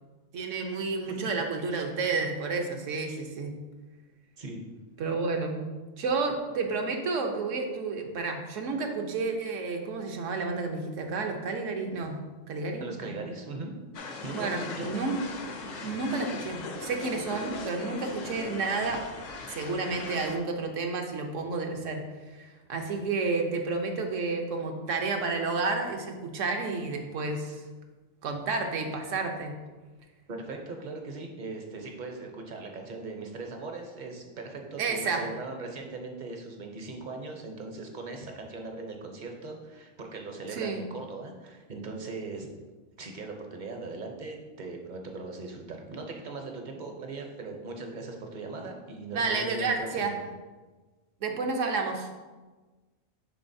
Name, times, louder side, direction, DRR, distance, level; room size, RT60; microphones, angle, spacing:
voice 1, 0.3-3.6 5.0-5.6 6.0-12.2 12.5-13.2 14.3-15.2 15.5-19.1 19.5-22.0 22.3-27.6 28.2-29.6 34.8-35.2 40.5-40.8 49.1-50.2 51.2-52.1, right 4 dB, 70° right, 3 dB, 1.1 m, -31 dB
voice 2, 12.8-13.7 14.2-14.9 30.3-42.5 43.0-50.1, right 3 dB, 45° right, 3 dB, 0.7 m, -39 dB
sound 1, 13.9-20.4, left 4 dB, 70° left, 1.1 m, -39 dB
9.5 x 3.8 x 2.7 m, 1.3 s
omnidirectional pair, 1.4 m